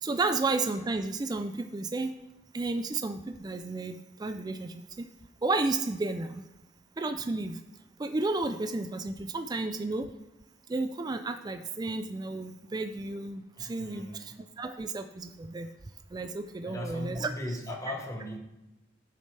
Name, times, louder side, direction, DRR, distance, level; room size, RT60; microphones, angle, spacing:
voice 1, 0.0-2.1 2.5-5.0 5.4-6.5 7.0-7.6 8.0-10.1 10.7-15.7 16.1-17.6, right 3 dB, 20° right, 9 dB, 0.3 m, -32 dB
voice 2, 13.6-14.3 16.6-18.4, left 1 dB, 15° left, 1 dB, 1.1 m, -38 dB
11.0 x 6.5 x 3.3 m, 0.98 s
head